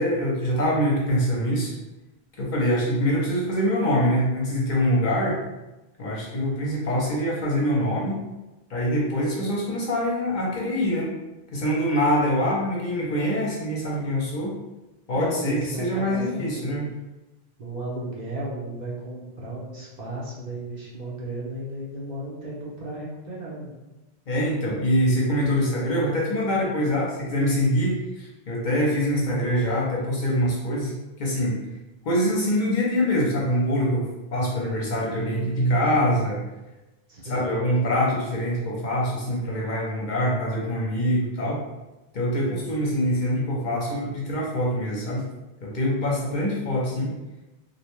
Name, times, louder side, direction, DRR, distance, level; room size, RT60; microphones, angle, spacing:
voice 1, 0.0-1.7 2.4-5.4 6.0-8.2 8.7-11.1 11.5-14.5 15.1-16.8 24.3-30.9 31.2-31.6 32.0-36.4 37.2-41.6 42.1-45.2 45.6-47.1, equal, 55° left, -3 dB, 0.6 m, -24 dB
voice 2, 15.1-16.9 17.6-23.7 37.1-37.5 42.3-42.7 46.0-46.4, right 1 dB, 50° right, -5 dB, 0.6 m, -34 dB
2.5 x 2.1 x 3.0 m, 1.0 s
omnidirectional pair, 1.0 m